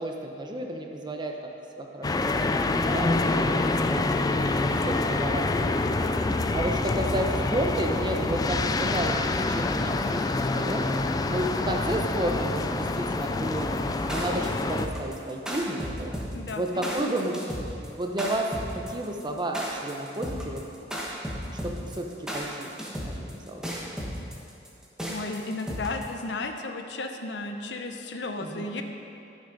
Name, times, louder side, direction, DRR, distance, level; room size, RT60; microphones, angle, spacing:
voice 1, 0.0-1.4 1.8-2.4 2.7-4.2 4.7-6.1 6.5-10.9 11.3-16.1 16.6-17.6 18.0-20.6 21.6-23.6 28.4-28.7, right 1 dB, 25° right, 2 dB, 0.9 m, -32 dB
sound 1, 2.0-14.9, left 2 dB, 20° left, 0.3 m, -26 dB
sound 2, 13.9-26.2, equal, 5° right, 1.3 m, -34 dB
voice 2, 16.3-17.0 25.1-28.8, left 2 dB, 75° left, 5 dB, 0.8 m, -34 dB
13.0 x 6.3 x 5.2 m, 2.7 s
head